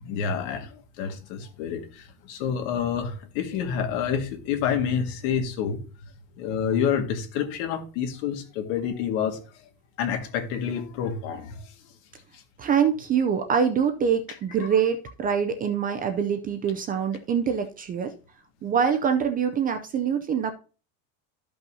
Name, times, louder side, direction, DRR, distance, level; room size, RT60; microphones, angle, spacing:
voice 1, 0.0-5.8 6.4-9.4 10.0-11.6, left 7 dB, 65° left, 1.9 m, -28 dB
voice 2, 12.6-18.1 18.6-20.5, right 7 dB, 20° right, 0.4 m, -24 dB
13.0 x 5.5 x 2.7 m
supercardioid pair, 150°, 41 cm